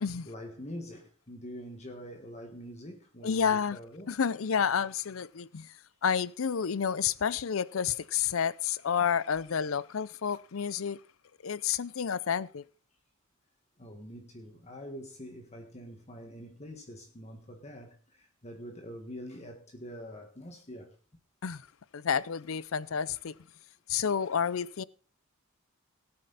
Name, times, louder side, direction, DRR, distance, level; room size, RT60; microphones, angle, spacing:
voice 1, 0.2-4.2 5.9-6.0 13.8-21.0, equal, 35° left, 1.6 m, -45 dB
voice 2, 3.2-3.8 4.1-5.7 6.0-11.0 11.4-12.6 21.4-21.7 21.9-23.3 23.9-24.8, left 7 dB, 75° left, 0.6 m, -30 dB
18.5 x 8.7 x 4.1 m
head